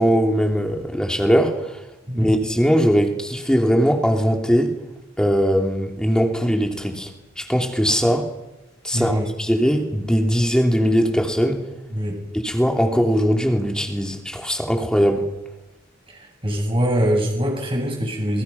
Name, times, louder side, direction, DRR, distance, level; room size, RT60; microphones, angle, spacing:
voice 1, 0.0-1.8 2.2-4.7 5.2-7.1 7.4-8.3 8.8-11.6 12.4-15.3, equal, 5° left, 3 dB, 3.0 m, -20 dB
voice 2, 8.9-9.3 11.9-12.2 16.1-18.4, equal, 25° right, 1 dB, 7.4 m, -23 dB
27.5 x 22.5 x 5.9 m, 1.0 s
head